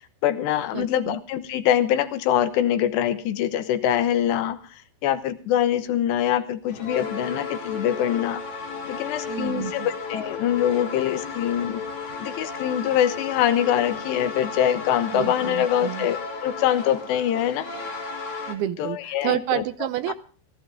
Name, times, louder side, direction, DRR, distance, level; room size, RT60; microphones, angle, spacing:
voice 1, 0.2-8.4 8.9-11.8 12.2-17.7 18.8-19.6 20.1-20.2, left 10 dB, 80° left, 10 dB, 3.3 m, -24 dB
voice 2, 0.7-1.2 9.3-9.9 15.1-16.1 18.5-20.1, right 12 dB, 75° right, 12 dB, 2.7 m, -29 dB
sound 1, 6.7-18.6, left 4 dB, 45° left, 3.8 m, -34 dB
18.5 x 14.5 x 3.5 m, 0.40 s
omnidirectional pair, 4.9 m